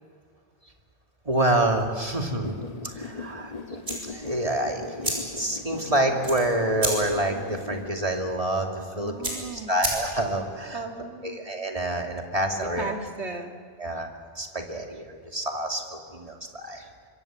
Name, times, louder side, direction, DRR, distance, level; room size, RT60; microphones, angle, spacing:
voice 1, 1.2-2.5 2.8-3.5 4.0-10.8 11.2-12.9 13.8-14.1 14.3-16.9, right 1 dB, 30° right, 2 dB, 2.6 m, -27 dB
sound 1, 2.4-7.9, left 3 dB, 35° left, 1.4 m, -39 dB
sound 2, 3.8-10.4, right 1 dB, 50° right, 5.9 m, -34 dB
voice 2, 8.9-9.8 10.7-11.4 12.6-13.6, right 3 dB, 75° right, 3 dB, 2.5 m, -36 dB
26.0 x 23.0 x 7.5 m, 2.1 s
omnidirectional pair, 1.2 m